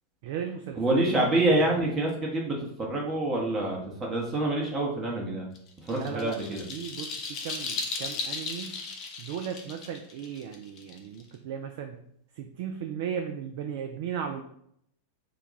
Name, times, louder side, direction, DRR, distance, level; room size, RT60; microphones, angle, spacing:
voice 1, 0.2-1.9 5.9-8.8 9.2-12.0 12.3-14.4, right 8 dB, 50° right, 5 dB, 0.3 m, -36 dB
voice 2, 0.8-5.5 5.8-6.6, right 1 dB, 25° right, -2 dB, 0.8 m, -27 dB
sound 1, 5.5-11.3, left 4 dB, 35° left, 0.6 m, -36 dB
2.8 x 2.2 x 3.8 m, 0.70 s
figure-of-eight pair, 90°, 0 cm